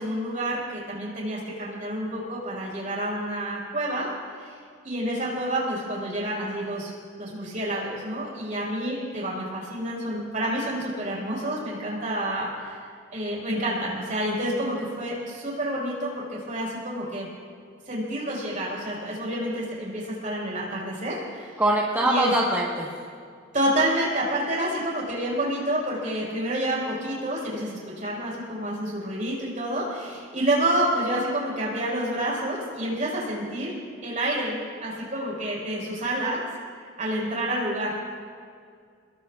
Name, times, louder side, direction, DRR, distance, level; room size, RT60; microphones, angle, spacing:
voice 1, 0.0-4.1 4.4-4.5 4.8-6.9 7.2-12.8 13.1-17.3 17.9-21.5 22.0-22.3 23.5-33.7 34.0-36.4 37.0-38.0, right 1 dB, 40° right, -4 dB, 5.0 m, -28 dB
voice 2, 21.6-23.0, right 1 dB, 10° right, -5 dB, 1.4 m, -23 dB
27.0 x 21.0 x 2.5 m, 2.2 s
head